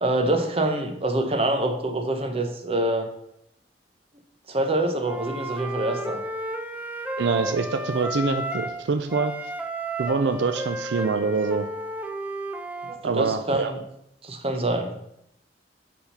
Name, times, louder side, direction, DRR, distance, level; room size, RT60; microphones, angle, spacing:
voice 1, 0.0-3.1 4.5-6.2 12.8-13.8 14.2-14.9, right 1 dB, 35° right, 4 dB, 0.9 m, -25 dB
Wind instrument woodwind instrument, 5.0-8.8 9.1-13.0, right 1 dB, 10° right, 0.5 m, -32 dB
voice 2, 7.2-9.3 10.0-11.7 13.0-13.7, right 4 dB, 75° right, 8 dB, 0.4 m, -25 dB
7.0 x 3.7 x 5.5 m, 0.78 s
head